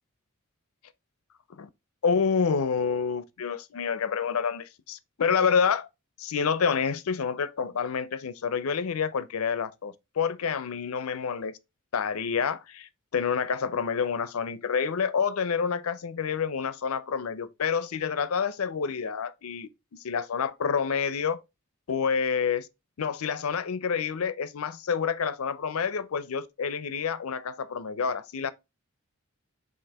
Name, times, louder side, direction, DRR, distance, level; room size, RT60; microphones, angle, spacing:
voice 1, 2.0-5.9 6.2-11.6 11.9-21.4 21.9-22.7 23.0-28.5, left 6 dB, 85° left, 0.5 m, -28 dB
6.3 x 2.5 x 3.3 m
head